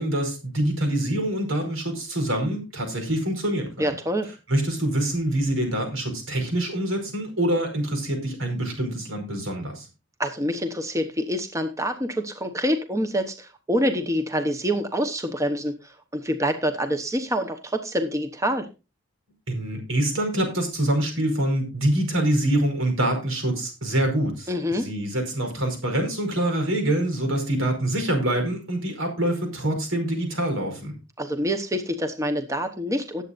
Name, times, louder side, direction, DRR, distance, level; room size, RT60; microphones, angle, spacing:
voice 1, 0.0-4.0 4.5-9.9 19.5-30.9, right 1 dB, 85° right, 4 dB, 4.9 m, -25 dB
voice 2, 3.8-4.3 10.2-18.7 24.5-24.9 31.2-33.2, equal, 15° right, 7 dB, 1.0 m, -26 dB
18.5 x 8.1 x 2.6 m, 0.28 s
head